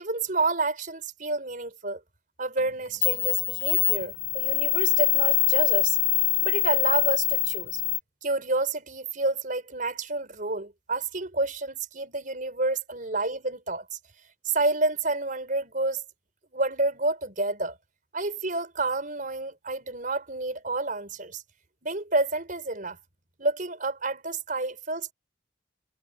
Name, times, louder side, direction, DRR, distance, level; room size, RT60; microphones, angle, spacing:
voice 1, 0.0-2.0 2.4-6.0 6.4-7.8 8.2-14.0 14.4-16.0 16.5-17.8 18.1-21.4 21.8-23.0 23.4-25.1, right 2 dB, 45° right, 4.9 m, -29 dB
sound 1, 2.6-2.7 3.0-8.0, left 16 dB, 85° left, 1.3 m, -24 dB
head